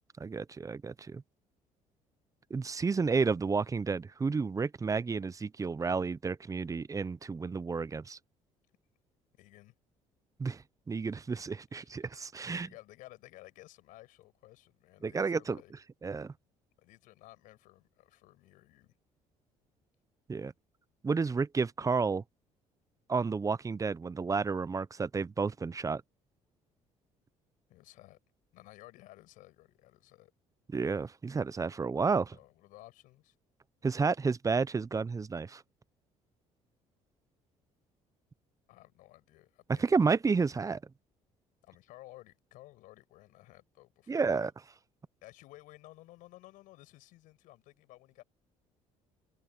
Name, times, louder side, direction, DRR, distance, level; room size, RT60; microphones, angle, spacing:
voice 1, 0.2-1.2 2.5-8.2 10.4-10.6 10.9-12.7 15.0-15.6 16.0-16.3 20.3-20.5 21.0-22.2 23.1-26.0 30.7-32.3 33.8-35.6 39.8-40.8 44.1-44.5, right 4 dB, 25° right, 0.7 m, -31 dB
voice 2, 9.3-9.7 11.7-12.1 12.5-15.7 16.8-18.9 27.7-28.2 28.5-30.3 32.3-33.3 38.7-39.9 41.6-44.5 45.2-48.2, left 17 dB, 80° left, 6.3 m, -55 dB
supercardioid pair, 80°, 14 cm